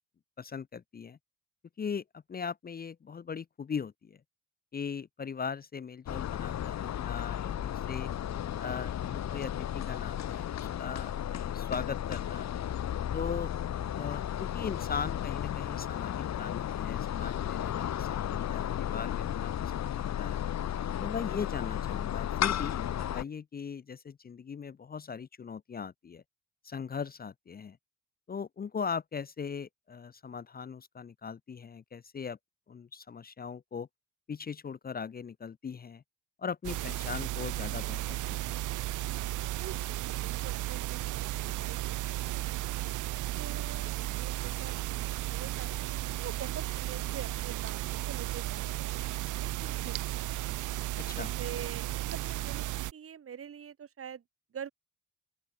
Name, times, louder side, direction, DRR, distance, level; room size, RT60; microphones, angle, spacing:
voice 1, 0.4-1.2 1.8-4.2 4.7-8.1 8.6-12.5 13.1-13.5 14.0-20.4 21.0-26.2 26.6-27.8 28.3-32.4 32.7-33.9 34.3-36.0 36.4-38.6 51.1-51.3, left 6 dB, 30° left, 0.7 m, -39 dB
sound 1, 6.1-23.2, left 10 dB, 60° left, 2.0 m, -34 dB
voice 2, 20.7-21.0 39.5-42.7 43.4-50.3 51.1-54.2 54.5-54.7, right 8 dB, 45° right, 2.0 m, -46 dB
sound 2, 36.6-52.9, right 16 dB, 85° right, 1.2 m, -34 dB
open air
cardioid pair, 90°, 30 cm